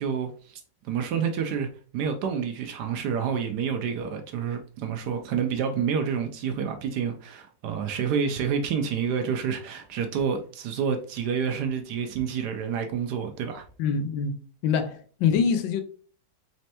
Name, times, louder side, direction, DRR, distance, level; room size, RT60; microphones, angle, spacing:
voice 1, 0.0-1.7 1.9-13.6, right 7 dB, 75° right, 1.0 m, -28 dB
voice 2, 13.8-14.4 14.6-15.8, left 6 dB, 85° left, 1.3 m, -24 dB
4.2 x 3.2 x 2.8 m
omnidirectional pair, 2.0 m